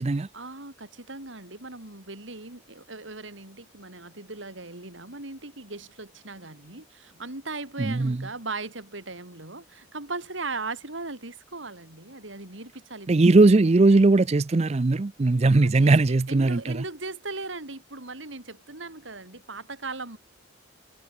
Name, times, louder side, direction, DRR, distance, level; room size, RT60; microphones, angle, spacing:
voice 1, 0.3-13.4 15.4-20.2, right 3 dB, 80° right, 4.4 m, -38 dB
voice 2, 7.8-8.3 13.1-16.8, right 3 dB, 35° right, 0.5 m, -19 dB
head